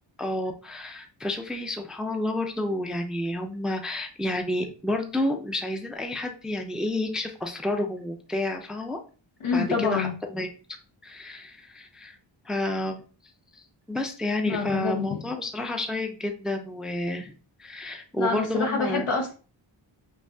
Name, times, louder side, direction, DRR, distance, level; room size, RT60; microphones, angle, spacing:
voice 1, 0.2-9.0 9.5-10.5 11.0-12.2 12.4-13.0 13.5-13.6 13.9-17.3 17.6-19.0, left 1 dB, ahead, 4 dB, 0.4 m, -30 dB
voice 2, 9.4-10.1 14.4-15.2 18.2-19.3, left 5 dB, 80° left, 0 dB, 1.5 m, -27 dB
5.5 x 2.8 x 2.7 m, 0.37 s
wide cardioid pair, 125°, 49 cm